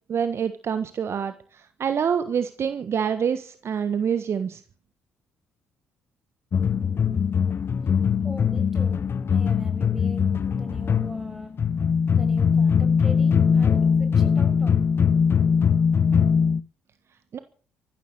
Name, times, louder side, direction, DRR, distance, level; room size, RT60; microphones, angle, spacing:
voice 1, 0.1-1.3 1.8-4.6 17.3-17.4, right 7 dB, 50° right, 11 dB, 1.4 m, -26 dB
sound 1, 6.5-16.6, left 6 dB, 45° left, 0.9 m, -21 dB
voice 2, 8.2-11.5 12.1-14.9, right 1 dB, 5° right, 6 dB, 6.4 m, -42 dB
14.5 x 13.5 x 6.6 m, 0.41 s
hypercardioid pair, 50°, 6 cm